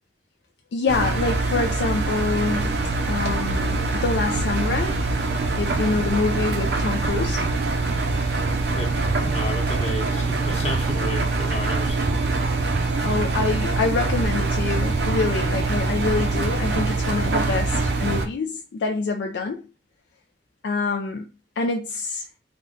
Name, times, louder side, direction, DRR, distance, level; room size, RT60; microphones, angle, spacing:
voice 1, 0.7-2.8 3.1-5.0 5.6-7.4 13.0-19.6 20.6-21.3 21.6-22.3, left 4 dB, 70° left, 0.4 m, -26 dB
Engine, 0.9-18.3, right 3 dB, 60° right, 0.5 m, -24 dB
voice 2, 8.7-12.2, left 1 dB, 35° left, 1.0 m, -33 dB
3.7 x 2.2 x 3.7 m
head